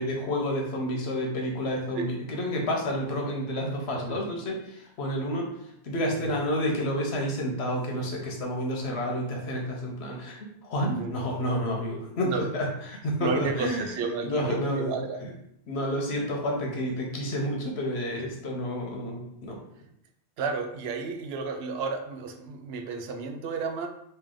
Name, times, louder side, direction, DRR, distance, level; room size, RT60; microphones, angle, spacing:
voice 1, 0.0-13.9 14.2-15.3 15.7-19.6, equal, 80° left, 0 dB, 1.1 m, -30 dB
voice 2, 13.2-15.2 18.2-18.3 20.4-23.9, right 4 dB, 75° right, 5 dB, 0.8 m, -32 dB
3.1 x 2.8 x 3.7 m, 0.75 s
omnidirectional pair, 1.1 m